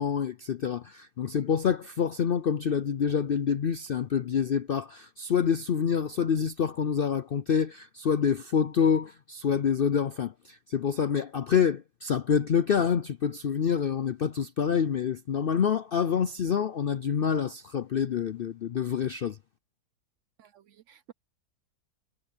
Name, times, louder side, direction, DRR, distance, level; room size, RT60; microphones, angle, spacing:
voice 1, 0.0-19.4, left 7 dB, 60° left, 0.5 m, -27 dB
voice 2, 20.4-21.1, right 10 dB, 65° right, 0.8 m, -54 dB
omnidirectional pair, 1.6 m